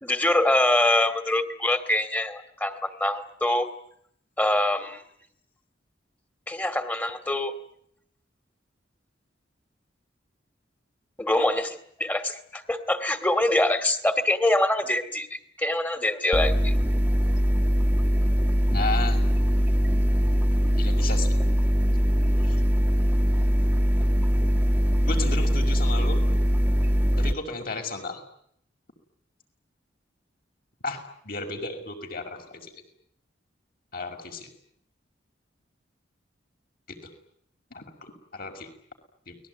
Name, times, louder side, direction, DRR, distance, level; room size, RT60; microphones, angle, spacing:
voice 1, 0.0-3.7 4.4-5.0 6.5-7.5 11.2-16.7, left 1 dB, 10° left, 11 dB, 2.4 m, -24 dB
sound 1, 16.3-27.3, equal, 10° right, 1.7 m, -22 dB
voice 2, 18.7-19.2 20.8-21.3 22.4-22.6 25.0-26.2 27.2-28.2 30.8-32.7 33.9-34.5 37.0-37.1 37.7-38.7 39.3-39.4, left 3 dB, 55° left, 4 dB, 6.1 m, -34 dB
29.5 x 21.0 x 9.6 m, 0.69 s
head